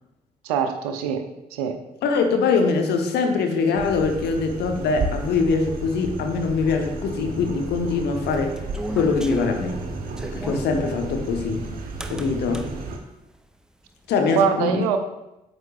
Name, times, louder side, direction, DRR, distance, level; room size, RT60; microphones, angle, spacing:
voice 1, 0.4-1.8 14.3-15.0, right 7 dB, 70° right, 7 dB, 0.6 m, -24 dB
voice 2, 2.0-8.6 8.9-9.8 10.3-11.6 12.1-12.6 14.1-14.9, left 4 dB, 55° left, 4 dB, 1.0 m, -23 dB
sound 1, 3.8-13.0, right 3 dB, 45° right, 1.2 m, -33 dB
sound 2, 7.7-10.7 12.0-12.7, right 1 dB, 5° right, 0.6 m, -34 dB
9.0 x 6.4 x 2.4 m, 0.93 s
figure-of-eight pair, 40°, 20 cm